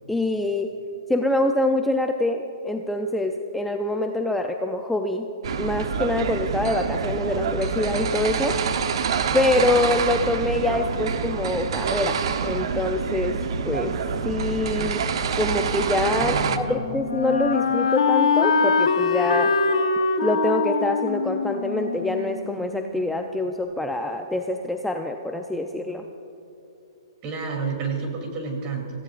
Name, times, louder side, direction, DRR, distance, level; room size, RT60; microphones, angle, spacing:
voice 1, 0.1-0.7 1.1-5.3 5.6-8.6 9.3-12.2 12.4-13.4 13.6-13.9 14.2-15.0 15.4-19.5 20.2-26.0, left 1 dB, 5° left, 4 dB, 0.4 m, -25 dB
sound 1, 5.4-16.6, right 6 dB, 65° right, 0.8 m, -26 dB
Wind instrument woodwind instrument, 16.2-23.0, left 5 dB, 80° left, 1.2 m, -23 dB
voice 2, 16.2-16.8 27.2-29.0, right 4 dB, 30° right, 1 dB, 3.0 m, -30 dB
26.0 x 15.5 x 2.5 m, 2.9 s
hypercardioid pair, 150°, 3 cm